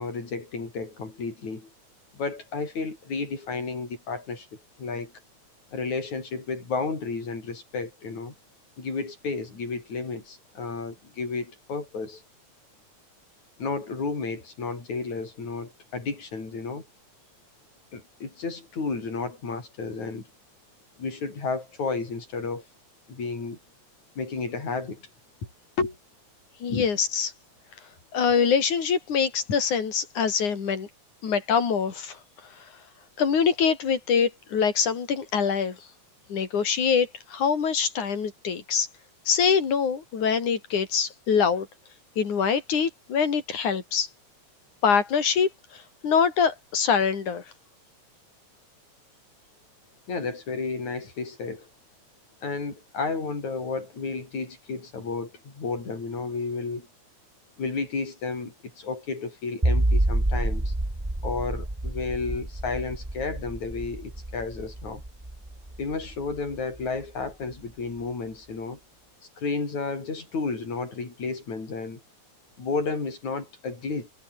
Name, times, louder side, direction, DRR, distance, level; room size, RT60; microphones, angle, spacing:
voice 1, 0.0-1.7 2.1-5.1 5.7-8.3 8.8-12.2 13.6-16.9 17.9-20.3 21.0-22.6 23.1-23.6 24.2-25.1 25.8-26.0 26.7-26.8 50.1-51.7 52.4-56.9 57.6-60.7 61.2-65.0 65.8-68.8 69.4-72.0 72.6-74.1, left 4 dB, 75° left, 7.8 m, -32 dB
voice 2, 26.6-27.3 28.1-30.9 31.2-32.2 33.2-35.8 36.3-38.9 39.3-41.7 42.2-44.1 44.8-47.4, left 6 dB, 90° left, 4.9 m, -24 dB
sound 1, 59.6-66.8, right 1 dB, 10° right, 2.3 m, -28 dB
omnidirectional pair, 3.4 m